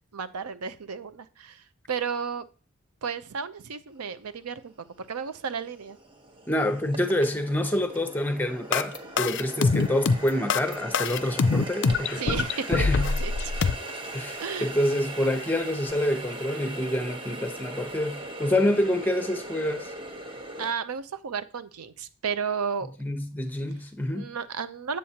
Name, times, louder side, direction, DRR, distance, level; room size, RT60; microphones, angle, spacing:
voice 1, 0.1-2.5 3.0-6.0 12.2-12.9 13.2-13.3 13.6-13.7 14.4-14.7 20.6-23.0 24.1-25.0, right 6 dB, 90° right, 0.6 m, -33 dB
Water tap faucet, 4.2-4.3 4.9-20.7, right 1 dB, 20° right, 0.9 m, -40 dB
voice 2, 6.5-12.2 12.7-13.2 14.1-19.9 23.0-24.4, left 1 dB, 10° left, 0.7 m, -27 dB
sound 1, 8.7-13.7, left 4 dB, 55° left, 0.4 m, -24 dB
8.5 x 7.5 x 2.9 m
head